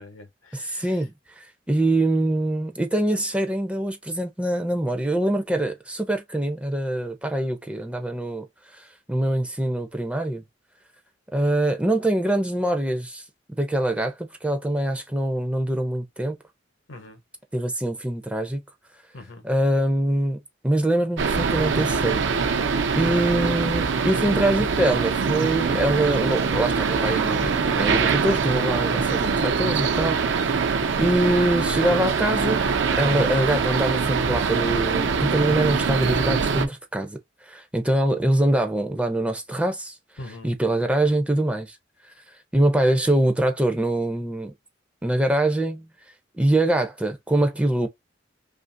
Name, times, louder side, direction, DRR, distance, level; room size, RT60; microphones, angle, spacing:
voice 1, 0.0-1.0 16.9-17.2 19.1-19.5 40.2-40.6, left 2 dB, 80° left, 0.9 m, -42 dB
voice 2, 0.5-8.5 8.7-10.4 11.3-13.2 13.6-16.4 17.5-18.6 19.4-22.2 22.9-30.7 31.0-32.7 33.0-37.2 37.5-39.9 40.4-41.8 42.5-44.5 45.0-45.9 46.3-47.9, right 1 dB, 5° right, 0.4 m, -24 dB
sound 1, 21.2-36.7, right 5 dB, 65° right, 0.5 m, -23 dB
2.8 x 2.5 x 2.5 m
head